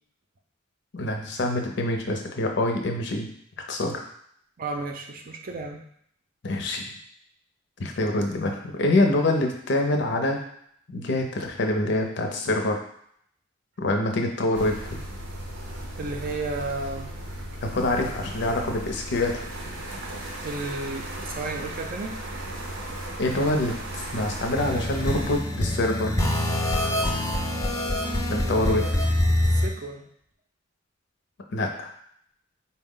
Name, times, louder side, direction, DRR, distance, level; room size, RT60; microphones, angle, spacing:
voice 1, 0.9-3.3 3.7-4.0 6.4-6.8 7.8-10.4 10.9-12.8 13.8-15.0 17.6-19.3 23.2-26.1 28.3-28.9 31.5-31.9, left 2 dB, 60° left, 3 dB, 0.6 m, -25 dB
voice 2, 4.6-5.8 16.0-17.1 20.4-22.1 28.4-29.0 29.5-30.1, right 3 dB, 45° right, 3 dB, 0.5 m, -33 dB
sound 1, 14.5-25.4, right 1 dB, 90° right, 0.7 m, -36 dB
sound 2, 24.5-29.7, left 1 dB, 15° left, 0.5 m, -25 dB
4.2 x 2.1 x 3.7 m, 0.68 s
head